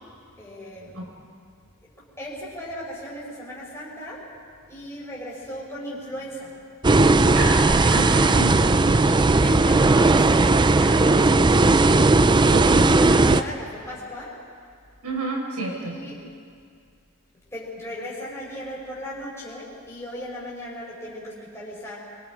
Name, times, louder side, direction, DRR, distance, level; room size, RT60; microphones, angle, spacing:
voice 1, 0.4-1.0 1.8-4.3 4.7-6.6 8.0-8.5 8.9-11.9 12.6-14.4 15.7-16.2 17.3-22.1, equal, 10° left, -6 dB, 4.9 m, -37 dB
sound 1, 6.8-13.4, right 3 dB, 20° right, 0.5 m, -17 dB
voice 2, 7.3-7.6 7.9-9.0 12.5-13.0 15.0-16.0, right 2 dB, 85° right, -1 dB, 5.3 m, -29 dB
25.5 x 23.5 x 5.0 m, 2.2 s
head